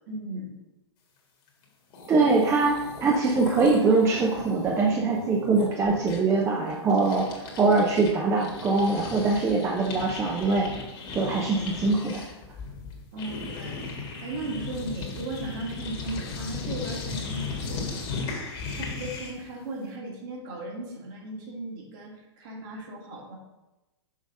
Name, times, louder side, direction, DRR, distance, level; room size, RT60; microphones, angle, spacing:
voice 1, 0.1-0.5 13.1-18.0 18.7-23.3, right 2 dB, 50° right, -1 dB, 1.9 m, -37 dB
sound 1, 1.6-1.7 1.9-8.1 8.4-19.5, left 4 dB, 40° left, 1.8 m, -37 dB
voice 2, 2.1-7.3 7.6-10.7 11.1-12.2, right 3 dB, 20° right, -1 dB, 0.7 m, -23 dB
6.4 x 3.4 x 5.3 m, 1.0 s
hypercardioid pair, 120°, 15 cm